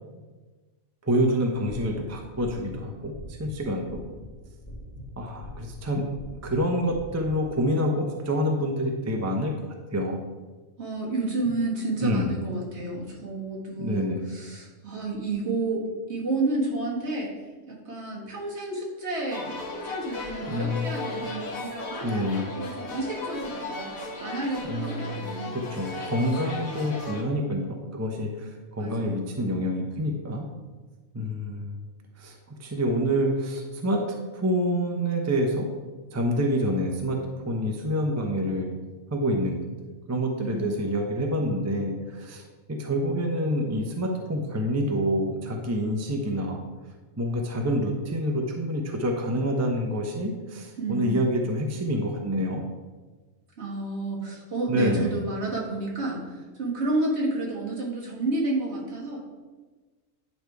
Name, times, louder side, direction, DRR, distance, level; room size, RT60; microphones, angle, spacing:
voice 1, 1.0-4.0 5.2-6.1 6.4-9.5 9.9-10.2 12.0-12.3 13.8-14.2 20.5-20.9 22.0-22.5 24.6-25.3 25.7-30.5 31.1-31.8 32.2-34.0 34.3-35.7 36.1-37.2 37.4-38.7 39.1-42.4 42.7-46.6 47.2-52.6 54.7-55.2, equal, 20° right, 1 dB, 0.5 m, -27 dB
sound 1, 1.5-7.6, equal, 10° left, 1.9 m, -43 dB
voice 2, 10.8-17.3 17.7-23.9 24.2-25.7 28.8-29.2 40.4-40.7 50.8-51.4 53.6-59.3, right 2 dB, 55° right, -3 dB, 1.8 m, -30 dB
sound 2, 19.3-27.2, left 3 dB, 90° left, 1.6 m, -36 dB
9.6 x 3.4 x 4.6 m, 1.3 s
omnidirectional pair, 1.4 m